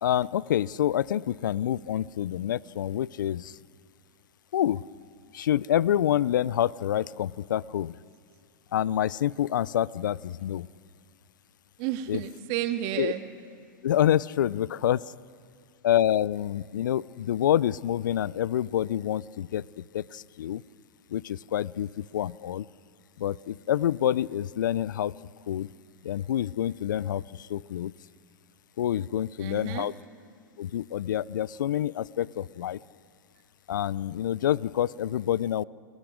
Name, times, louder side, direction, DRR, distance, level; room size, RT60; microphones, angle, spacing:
voice 1, 0.0-3.6 4.5-4.9 5.3-8.0 8.7-10.7 12.1-12.2 13.0-13.1 13.8-15.0 15.8-20.6 21.1-22.7 23.2-25.1 25.5-25.7 26.0-27.9 28.8-29.9 30.6-32.8 33.7-35.6, left 11 dB, 75° left, 22 dB, 0.4 m, -27 dB
voice 2, 11.8-13.2 29.1-29.9, right 13 dB, 45° right, 7 dB, 1.8 m, -32 dB
29.5 x 21.5 x 5.1 m, 2.2 s
hypercardioid pair, 115°, 10 cm